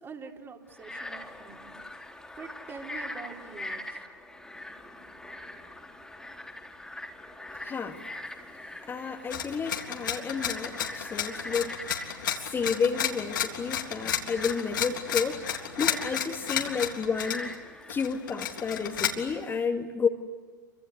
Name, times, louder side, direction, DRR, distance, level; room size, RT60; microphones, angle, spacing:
voice 1, 0.0-2.1 2.4-4.0, right 5 dB, 20° right, 2 dB, 3.7 m, -45 dB
Frog, 0.7-19.5, left 1 dB, 5° left, 3.5 m, -43 dB
voice 2, 7.5-8.1 8.8-12.0 12.3-15.4 15.8-17.5 17.9-20.1, left 5 dB, 20° left, 2 dB, 2.3 m, -31 dB
sound 1, 9.3-17.5 17.9-19.1, left 9 dB, 75° left, 3.6 m, -32 dB
28.5 x 25.0 x 8.3 m, 1.5 s
figure-of-eight pair, 100°, 11 cm